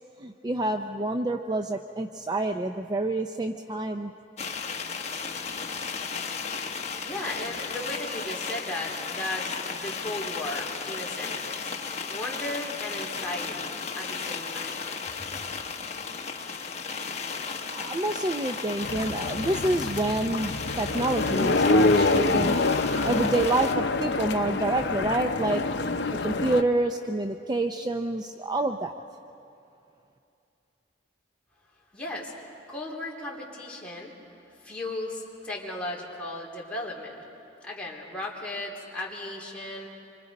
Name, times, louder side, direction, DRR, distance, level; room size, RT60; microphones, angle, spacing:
voice 1, 0.2-4.1 17.7-22.6 23.0-25.6 26.2-29.0, right 2 dB, 25° right, 6 dB, 0.5 m, -28 dB
sound 1, 4.4-23.7, left 5 dB, 40° left, 1.1 m, -35 dB
voice 2, 7.0-14.8 15.2-15.3 31.9-32.3 32.7-34.1 34.6-37.2 37.6-39.9, left 1 dB, 5° left, -5 dB, 3.1 m, -36 dB
sound 2, 18.8-26.6, left 3 dB, 70° left, 0.7 m, -26 dB
26.5 x 24.5 x 5.3 m, 2.7 s
head